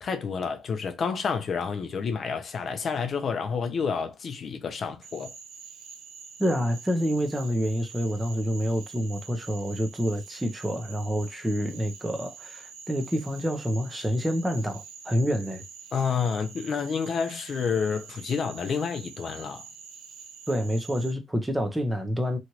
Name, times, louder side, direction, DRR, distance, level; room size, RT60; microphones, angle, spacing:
voice 1, 0.0-5.3 15.9-19.6, left 6 dB, 50° left, 0.7 m, -29 dB
Cricket / Frog, 5.0-21.1, right 6 dB, 90° right, 0.9 m, -46 dB
voice 2, 6.4-15.6 20.5-22.4, equal, 10° right, 0.8 m, -28 dB
3.0 x 2.5 x 2.9 m
cardioid pair, 90°, 0 cm